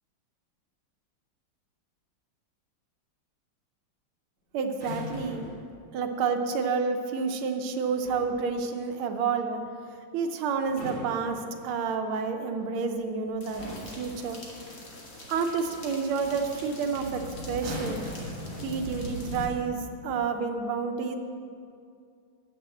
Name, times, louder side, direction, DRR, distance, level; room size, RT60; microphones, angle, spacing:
voice 1, 4.5-5.5 5.9-9.6 10.1-13.7 14.0-14.4 15.3-18.0 18.6-21.2, right 5 dB, 85° right, 6 dB, 1.6 m, -29 dB
sound 1, 4.7-5.7 7.8-8.4 10.5-11.9 12.9-13.2 13.6-14.1 15.8-15.9 16.2-16.6 17.5-19.2 20.1-20.4, left 1 dB, 35° right, 2.5 m, -41 dB
sound 2, 13.4-19.5, left 1 dB, 35° left, 1.4 m, -41 dB
7.0 x 6.6 x 7.6 m, 2.4 s
omnidirectional pair, 2.3 m